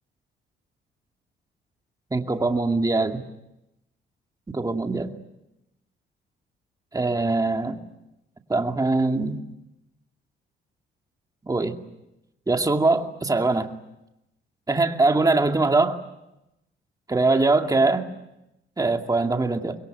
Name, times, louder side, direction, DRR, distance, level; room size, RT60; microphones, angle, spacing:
voice 1, 2.1-3.3 4.5-5.1 6.9-7.8 8.5-9.4 11.4-11.8 12.5-13.7 14.7-16.0 17.1-18.1 18.8-19.8, right 3 dB, 20° right, 4 dB, 2.4 m, -22 dB
25.5 x 21.5 x 9.3 m, 0.92 s
cardioid pair, 90°, 20 cm